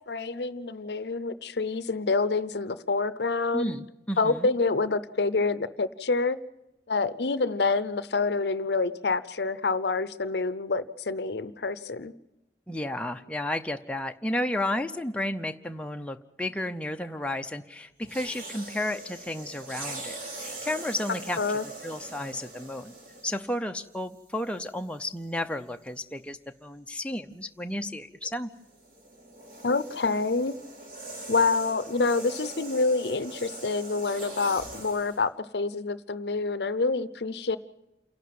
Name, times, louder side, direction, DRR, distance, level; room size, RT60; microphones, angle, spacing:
voice 1, 0.1-3.7 4.2-6.4 6.9-12.1 21.4-21.6 29.6-30.5 31.3-37.6, left 3 dB, 70° left, 15 dB, 0.7 m, -27 dB
voice 2, 3.5-4.5 12.7-21.4 21.8-22.9 23.2-28.5, left 1 dB, 5° left, 5 dB, 0.7 m, -32 dB
sound 1, 18.0-23.5 24.4-24.6 28.5-35.2, right 2 dB, 50° right, 3.8 m, -42 dB
28.5 x 12.0 x 9.4 m, 0.92 s
head